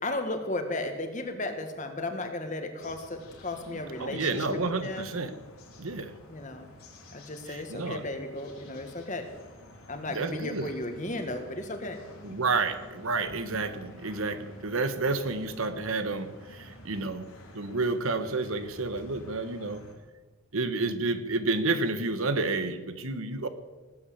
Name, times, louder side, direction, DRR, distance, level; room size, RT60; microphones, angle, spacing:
voice 1, 0.0-5.1 6.3-6.7 7.1-9.2 9.9-12.0, left 2 dB, 35° left, 6 dB, 1.8 m, -35 dB
sound 1, 2.8-20.0, left 1 dB, 85° left, 4.0 m, -51 dB
voice 2, 4.0-5.3 5.8-6.1 7.5-8.0 10.1-10.7 12.2-17.3 17.5-19.8 20.5-23.5, right 3 dB, 70° right, 10 dB, 1.2 m, -30 dB
18.5 x 8.6 x 8.6 m, 1.3 s
head